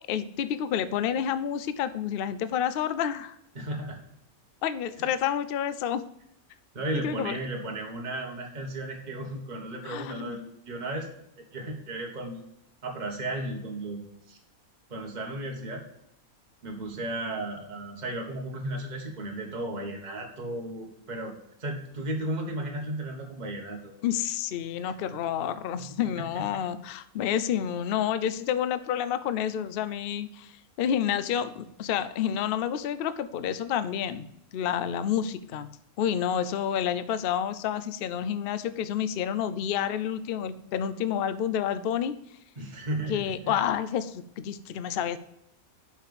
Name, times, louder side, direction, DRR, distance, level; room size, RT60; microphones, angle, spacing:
voice 1, 0.1-3.4 4.6-6.1 7.0-7.4 9.8-10.4 24.0-30.5 30.8-34.2 34.5-35.7 36.0-42.1 43.1-45.2, left 9 dB, 60° left, 14 dB, 0.6 m, -29 dB
voice 2, 3.5-4.0 5.0-5.1 6.7-11.1 11.5-12.4 12.8-14.0 14.3-14.4 14.9-15.8 16.6-21.3 21.6-23.9 24.8-24.9 25.8-25.9 26.2-26.6 42.6-43.6, right 1 dB, 30° right, 0 dB, 1.5 m, -34 dB
5.9 x 5.8 x 6.8 m, 0.80 s
omnidirectional pair, 1.5 m